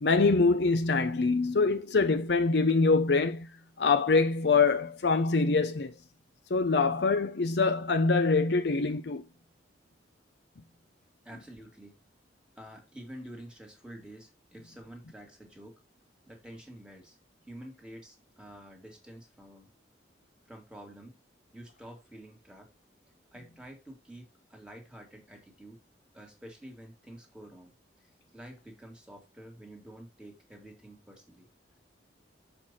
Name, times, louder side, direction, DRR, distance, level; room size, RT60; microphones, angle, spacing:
voice 1, 0.0-3.5 3.8-5.9 6.5-9.2 11.3-11.4, left 4 dB, 65° left, 0.6 m, -24 dB
voice 2, 11.3-11.9 12.6-15.8 16.3-17.2 17.5-19.7 20.5-21.2 21.5-22.7 23.3-25.8 26.1-27.7 28.3-31.5, right 1 dB, 5° right, 1.9 m, -48 dB
6.8 x 4.5 x 4.1 m
head